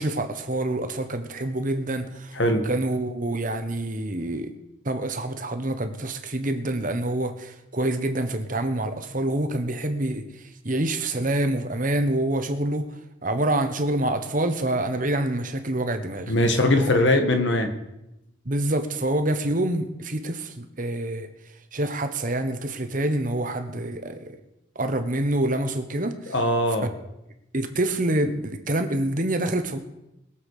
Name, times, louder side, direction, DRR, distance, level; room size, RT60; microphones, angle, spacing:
voice 1, 0.0-2.4 2.6-4.5 4.8-10.2 10.6-12.9 13.2-16.3 16.8-17.0 18.4-21.3 21.7-24.4 24.7-26.3 27.5-29.8, right 1 dB, 40° right, 8 dB, 1.2 m, -26 dB
voice 2, 16.3-17.7 26.3-26.9, left 1 dB, 65° left, 6 dB, 1.8 m, -21 dB
21.5 x 7.6 x 5.0 m, 0.89 s
head